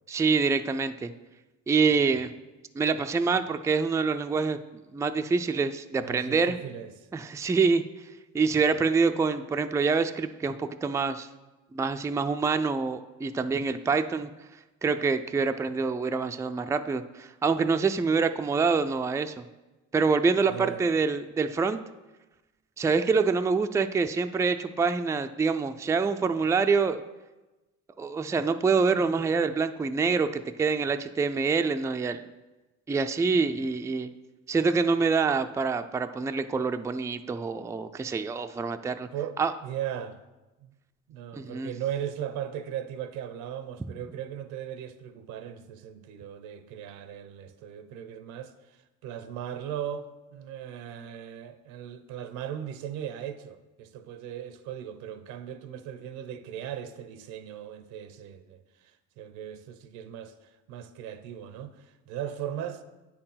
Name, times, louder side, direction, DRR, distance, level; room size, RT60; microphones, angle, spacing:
voice 1, 0.1-1.1 1.7-2.3 2.8-6.6 7.1-7.8 8.3-11.3 11.7-14.3 14.8-19.5 19.9-21.8 22.8-27.0 28.0-32.2 32.9-34.1 34.5-39.1 39.4-39.5 41.4-41.7, right 4 dB, 10° right, 0.3 m, -26 dB
voice 2, 6.0-6.9 20.5-20.9 22.8-22.9 39.1-40.2 40.6-40.7 41.1-62.8, right 9 dB, 80° right, 0.7 m, -38 dB
8.5 x 4.5 x 5.7 m
supercardioid pair, 90°, 29 cm